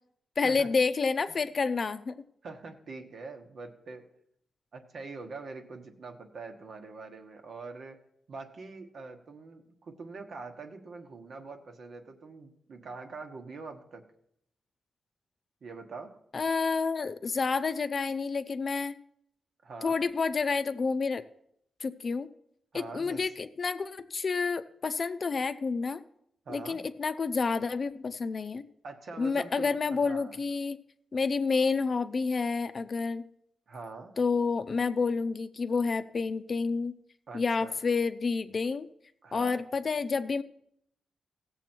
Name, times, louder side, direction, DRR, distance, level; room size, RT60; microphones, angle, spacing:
voice 1, 0.4-2.2 16.3-19.0 19.8-21.2 21.8-22.3 22.7-26.0 26.5-28.7 29.2-30.8 31.1-33.2 34.2-36.9 37.3-38.9 39.3-40.4, left 4 dB, 45° left, 10 dB, 0.6 m, -29 dB
voice 2, 2.4-4.1 4.7-8.0 8.3-14.1 15.6-16.2 19.6-20.1 22.7-23.3 26.4-26.8 28.8-30.3 33.7-34.1 37.3-37.8 39.2-39.6, right 3 dB, 65° right, 4 dB, 1.3 m, -44 dB
16.5 x 7.1 x 4.5 m, 0.74 s
cardioid pair, 105°, 0 cm